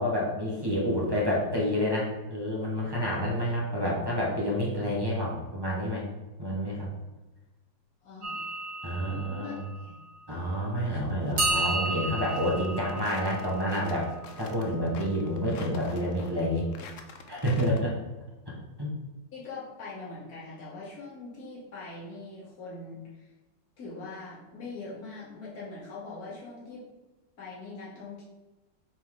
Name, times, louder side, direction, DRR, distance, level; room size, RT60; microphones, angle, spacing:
voice 1, 0.0-6.0 6.4-6.9 8.8-9.6 10.3-14.1 14.4-16.6 17.3-17.9 18.8-18.9, equal, 15° right, -5 dB, 1.4 m, -29 dB
voice 2, 8.0-8.4 9.1-10.0 10.9-11.0 19.3-23.3 23.8-26.8 27.4-28.2, left 3 dB, 50° left, -8 dB, 2.5 m, -42 dB
sound 1, 8.2-10.7 11.4-15.3, right 2 dB, 55° right, 2.2 m, -34 dB
sound 2, 11.0-17.8, left 5 dB, 70° left, 0.7 m, -47 dB
7.1 x 4.4 x 3.8 m, 1.1 s
omnidirectional pair, 2.1 m